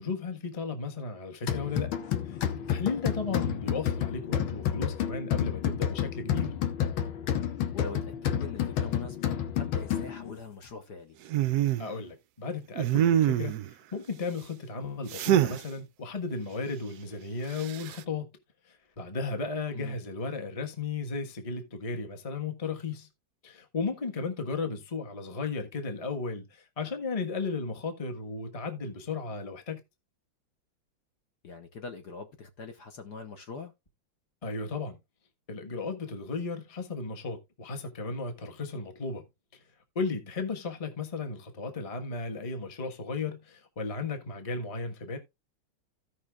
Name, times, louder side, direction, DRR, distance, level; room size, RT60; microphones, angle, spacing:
voice 1, 0.0-1.9 2.3-2.4 2.7-6.5 11.8-13.6 13.9-18.3 19.0-23.1 23.4-29.8 34.4-35.0 35.5-39.2 39.9-45.2, left 4 dB, 20° left, 1.2 m, -35 dB
sound 1, 1.5-10.4, left 9 dB, 80° left, 1.9 m, -30 dB
voice 2, 7.7-11.2 19.7-20.0 31.4-33.7, left 4 dB, 55° left, 1.6 m, -43 dB
sound 2, 11.3-11.9 12.7-13.7 15.1-15.6 17.6-18.0, right 11 dB, 75° right, 0.9 m, -25 dB
16.5 x 5.6 x 2.4 m
omnidirectional pair, 2.2 m